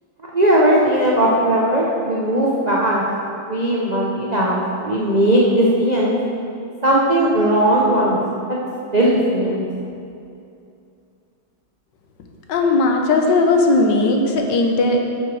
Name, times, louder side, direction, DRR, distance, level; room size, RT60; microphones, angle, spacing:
voice 1, 0.3-3.0 3.5-6.1 6.8-8.6 8.9-9.6, right 1 dB, 65° right, -5 dB, 0.4 m, -18 dB
voice 2, 12.5-15.0, left 2 dB, 65° left, 3 dB, 1.4 m, -17 dB
8.5 x 6.9 x 4.8 m, 2.6 s
omnidirectional pair, 2.2 m